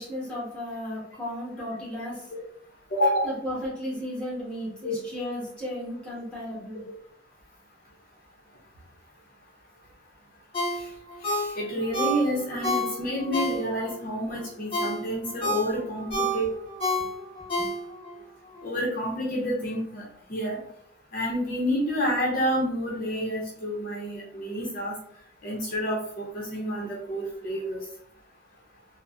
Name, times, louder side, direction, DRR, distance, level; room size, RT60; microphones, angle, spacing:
voice 1, 0.0-2.3 3.2-6.8 17.6-17.7, equal, 5° left, -7 dB, 1.3 m, -34 dB
voice 2, 2.9-3.3 4.8-5.0 11.3-16.5 18.6-20.0 20.3-20.6 21.1-24.9 25.4-26.2 26.5-27.8, equal, 50° left, -3 dB, 0.7 m, -29 dB
Ringtone, 10.5-14.0 14.4-18.2 18.5-18.6, equal, 30° left, 1.1 m, -29 dB
3.4 x 2.1 x 2.6 m, 0.68 s
head